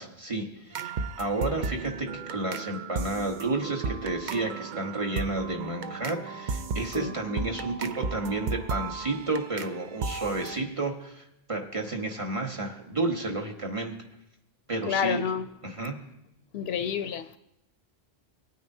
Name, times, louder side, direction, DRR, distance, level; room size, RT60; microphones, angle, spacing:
voice 1, 0.0-13.9 14.7-15.2 15.6-15.9, right 2 dB, 30° right, 1.1 m, -31 dB
sound 1, 0.7-10.6, right 4 dB, 55° right, 0.6 m, -35 dB
voice 2, 14.9-15.5 16.5-17.4, left 8 dB, 70° left, 0.8 m, -29 dB
18.5 x 9.3 x 2.7 m
omnidirectional pair, 1.1 m